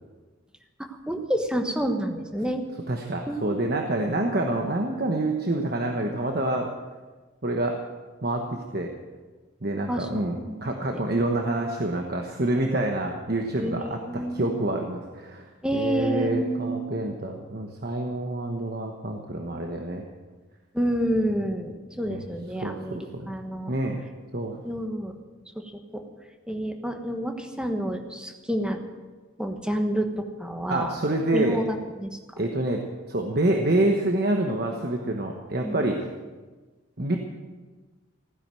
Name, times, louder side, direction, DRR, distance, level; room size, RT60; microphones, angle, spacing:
voice 1, 1.1-2.6 3.3-3.8 9.9-10.6 10.8-11.0 13.6-14.4 15.6-16.8 20.7-23.0 23.3-23.7 24.6-25.1 25.5-26.0 26.5-28.8 29.4-30.9 31.3-32.2 35.6-35.8, equal, 5° right, 4 dB, 1.2 m, -29 dB
voice 2, 2.9-6.7 7.4-7.8 8.2-8.9 9.6-15.5 15.7-20.0 22.1-22.2 22.6-23.3 23.7-24.0 24.3-24.6 30.7-31.6 32.4-32.8 33.1-36.0 37.0-37.2, right 1 dB, 50° right, 2 dB, 1.2 m, -27 dB
15.5 x 10.0 x 7.6 m, 1.3 s
head